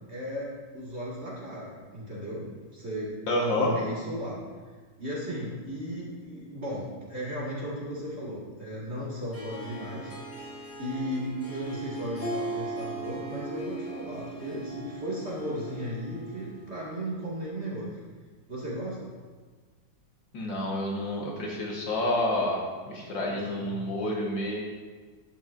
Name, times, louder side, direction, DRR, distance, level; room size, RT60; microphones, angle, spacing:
voice 1, 0.1-2.5 2.7-3.2 3.5-4.4 5.0-10.1 10.8-17.9 18.5-19.0 23.0-23.8, equal, 30° right, -7 dB, 2.2 m, -35 dB
voice 2, 3.3-3.7 20.3-24.6, left 1 dB, 60° left, -3 dB, 2.0 m, -29 dB
Harp, 9.3-17.0, right 2 dB, 10° left, 1.2 m, -39 dB
11.5 x 8.1 x 2.5 m, 1.4 s
omnidirectional pair, 2.3 m